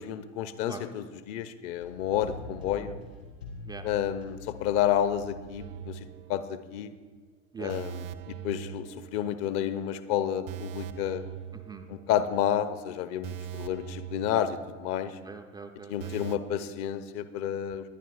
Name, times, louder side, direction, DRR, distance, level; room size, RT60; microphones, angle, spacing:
voice 1, 0.0-3.0 3.8-6.9 7.6-11.2 11.9-15.2 15.9-17.9, left 10 dB, 40° left, 11 dB, 0.7 m, -30 dB
sound 1, 1.8-5.5 6.1-6.2, left 3 dB, 80° left, 3.4 m, -44 dB
sound 2, 5.6-6.9 7.1-7.3 7.7-9.6 9.9-10.0 10.5-12.4 12.7-12.8 13.2-15.2 15.4-15.5 16.0-16.4, right 10 dB, 50° right, 0.7 m, -41 dB
voice 2, 11.5-11.9 15.0-16.1, right 5 dB, 10° right, 5 dB, 0.4 m, -42 dB
20.0 x 10.5 x 2.4 m, 1.4 s
figure-of-eight pair, 80°, 36 cm